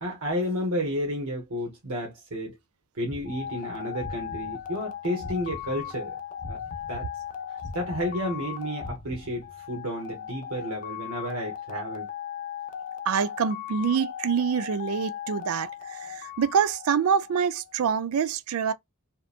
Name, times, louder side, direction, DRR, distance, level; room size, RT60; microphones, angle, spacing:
voice 1, 0.0-2.6 3.0-6.2 6.5-7.1 7.7-12.1, equal, 85° right, 1.0 m, -31 dB
sound 1, 3.1-6.0 6.4-9.7, left 1 dB, 70° left, 0.7 m, -43 dB
sound 2, 3.2-17.7, left 9 dB, 35° left, 0.4 m, -38 dB
voice 2, 13.1-18.7, right 7 dB, 70° right, 0.3 m, -26 dB
2.8 x 2.2 x 2.4 m
head